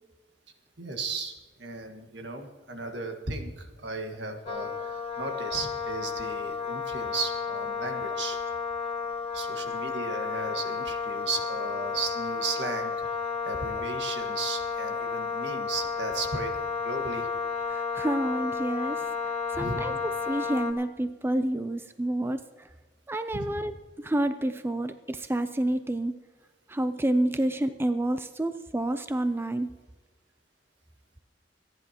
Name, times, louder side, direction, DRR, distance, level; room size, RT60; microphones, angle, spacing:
voice 1, 0.8-8.4 9.3-16.5 16.8-17.3 19.5-20.0 23.3-23.5, right 3 dB, 80° right, 4 dB, 1.7 m, -35 dB
Wind instrument woodwind instrument, 4.5-20.7, left 5 dB, 35° left, 1.1 m, -32 dB
voice 2, 17.7-19.1 19.5-22.7 23.1-23.7 24.0-26.1 26.7-29.7, right 1 dB, 15° right, 10 dB, 0.5 m, -29 dB
27.0 x 10.5 x 2.9 m, 1.3 s
head